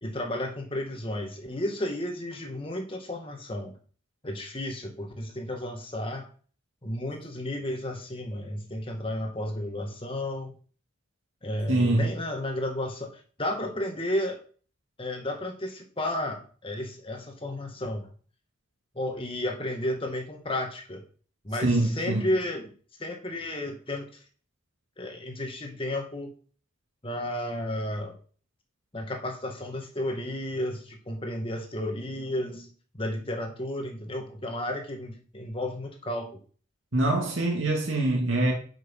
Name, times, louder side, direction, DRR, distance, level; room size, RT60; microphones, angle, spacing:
voice 1, 0.0-3.7 4.2-6.3 6.8-10.6 11.4-14.4 15.0-18.1 19.0-21.0 21.4-22.7 23.0-24.1 25.0-26.3 27.0-28.2 28.9-32.7 32.9-36.3, left 1 dB, 25° left, 1.8 m, -32 dB
voice 2, 11.7-12.1 21.6-22.2 36.9-38.5, right 2 dB, 75° right, 2.6 m, -24 dB
11.0 x 6.3 x 5.4 m
head